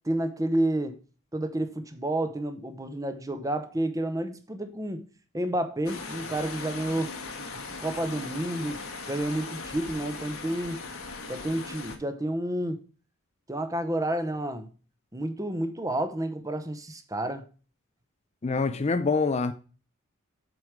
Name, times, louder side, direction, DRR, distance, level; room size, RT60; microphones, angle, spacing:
voice 1, 0.0-1.0 1.3-5.0 5.3-7.1 7.8-8.8 9.1-10.8 11.3-12.8 13.5-14.7 15.1-17.4, right 1 dB, 15° right, 0.8 m, -30 dB
sound 1, 5.8-12.0, left 3 dB, 80° left, 1.2 m, -39 dB
voice 2, 18.4-19.5, left 4 dB, 30° left, 0.4 m, -25 dB
7.9 x 4.7 x 4.8 m
head